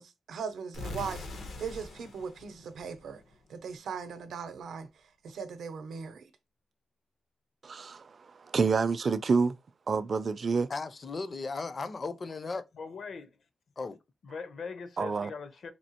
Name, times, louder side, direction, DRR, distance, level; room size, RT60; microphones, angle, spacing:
voice 1, 0.0-3.2 3.5-4.9 5.2-6.3, right 6 dB, 90° right, 0.6 m, -39 dB
sound 1, 0.7-3.6, left 3 dB, 85° left, 1.0 m, -43 dB
voice 2, 7.6-8.0 8.5-9.6 9.9-10.7 15.0-15.3, right 4 dB, 40° right, 0.4 m, -27 dB
voice 3, 10.7-12.6 13.8-14.0, left 3 dB, 35° left, 0.5 m, -36 dB
voice 4, 12.7-13.4 14.2-15.7, left 5 dB, 65° left, 0.7 m, -41 dB
4.3 x 2.7 x 2.9 m
wide cardioid pair, 150°, 0 cm